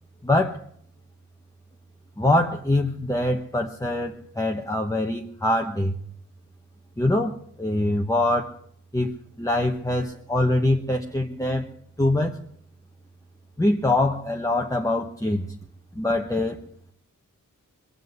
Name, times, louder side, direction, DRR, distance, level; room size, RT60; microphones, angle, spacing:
voice 1, 0.2-0.6 2.2-6.0 7.0-8.6 8.9-11.7 12.0-12.4 13.6-15.4 15.9-16.6, left 1 dB, 10° left, 2 dB, 1.0 m, -24 dB
22.5 x 7.6 x 8.0 m, 0.65 s
wide cardioid pair, 90°, 32 cm